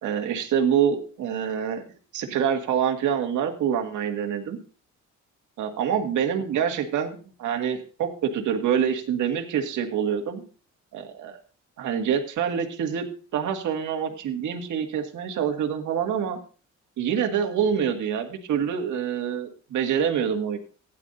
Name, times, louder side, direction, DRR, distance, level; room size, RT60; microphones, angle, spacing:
voice 1, 0.0-1.8 2.1-4.6 5.6-10.4 10.9-11.4 11.8-13.0 13.3-16.4 17.0-20.6, right 8 dB, 75° right, 4 dB, 2.0 m, -26 dB
16.0 x 10.5 x 2.6 m, 0.38 s
cardioid pair, 90°, 30 cm